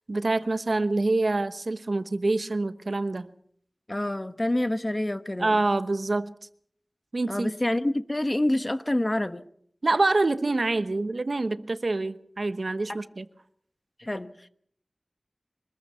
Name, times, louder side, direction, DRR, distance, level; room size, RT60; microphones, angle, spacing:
voice 1, 0.1-3.3 5.4-6.3 7.1-7.5 9.8-13.2, right 2 dB, 75° right, 1.1 m, -26 dB
voice 2, 3.9-5.6 7.3-9.5 12.9-13.0 14.0-14.5, left 1 dB, 30° left, 1.2 m, -27 dB
24.5 x 20.5 x 5.7 m
wide cardioid pair, 55°, 0 cm